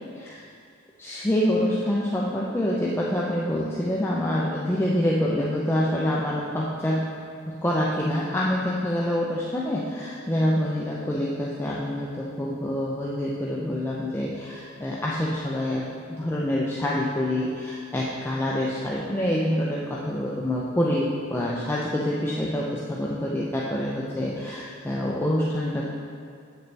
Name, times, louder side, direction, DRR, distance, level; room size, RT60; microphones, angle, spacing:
voice 1, 1.0-7.1 7.5-25.9, left 1 dB, 10° left, -5 dB, 0.5 m, -26 dB
8.1 x 6.7 x 3.3 m, 2.2 s
head